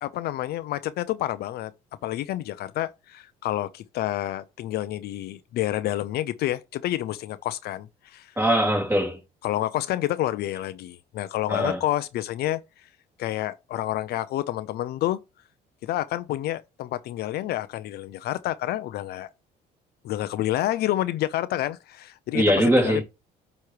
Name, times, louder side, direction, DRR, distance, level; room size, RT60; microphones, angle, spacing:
voice 1, 0.0-1.7 2.0-8.3 9.4-12.6 13.2-15.2 15.8-19.3 20.0-22.4 22.8-23.0, left 14 dB, 70° left, 0.5 m, -29 dB
voice 2, 8.4-9.2 11.5-11.8 22.3-23.0, equal, 10° right, 2.8 m, -21 dB
8.4 x 3.1 x 4.7 m
cardioid pair, 110°, 17 cm